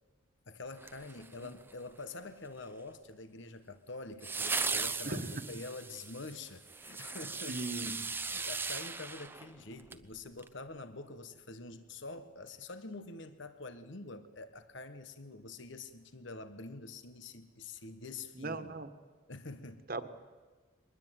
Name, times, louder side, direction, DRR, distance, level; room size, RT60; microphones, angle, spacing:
voice 1, 0.5-7.9 8.3-18.7 19.3-19.9, left 3 dB, 60° left, 11 dB, 1.2 m, -46 dB
sound 1, 0.8-1.7 4.2-10.0 10.4-10.5, right 4 dB, 10° right, 0.8 m, -38 dB
voice 2, 5.0-5.4 7.5-7.9 18.4-18.9 19.9-20.1, right 2 dB, 45° right, 9 dB, 1.5 m, -38 dB
23.5 x 20.5 x 9.2 m, 1.4 s
head